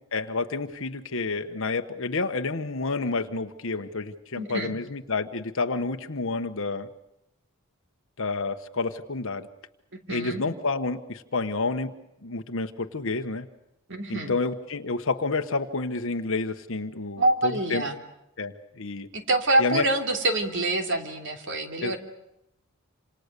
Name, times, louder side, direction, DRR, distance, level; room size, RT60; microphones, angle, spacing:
voice 1, 0.1-6.9 8.2-9.5 10.1-11.9 12.2-13.5 14.1-17.9 18.4-19.1 19.6-19.9 21.8-22.0, left 3 dB, 60° left, 6 dB, 1.2 m, -29 dB
voice 2, 4.4-4.7 10.1-10.4 13.9-14.3 17.2-17.9 19.1-22.0, right 2 dB, 55° right, 5 dB, 3.1 m, -26 dB
27.5 x 27.0 x 6.7 m, 0.85 s
head